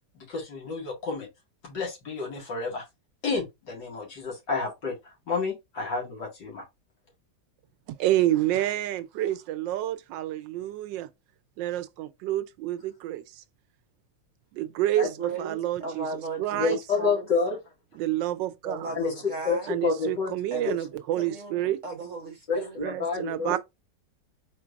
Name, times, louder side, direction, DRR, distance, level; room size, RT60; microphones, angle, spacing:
voice 1, 0.1-1.3 1.6-2.8 3.2-6.6 15.0-15.1 16.5-17.6 18.9-19.1 19.4-20.3 20.6-20.7 22.5-23.5, left 4 dB, 70° left, 2.6 m, -29 dB
voice 2, 7.9-11.1 11.6-13.4 14.5-15.1 15.4-16.8 18.0-19.0 19.7-21.8 22.8-23.6, right 13 dB, 80° right, 1.2 m, -28 dB
voice 3, 15.0-16.6 17.0-17.2 18.6-19.7 20.5-20.7 21.2-22.8 23.5-23.6, right 4 dB, 55° right, 0.9 m, -36 dB
4.5 x 4.1 x 2.4 m
omnidirectional pair, 2.0 m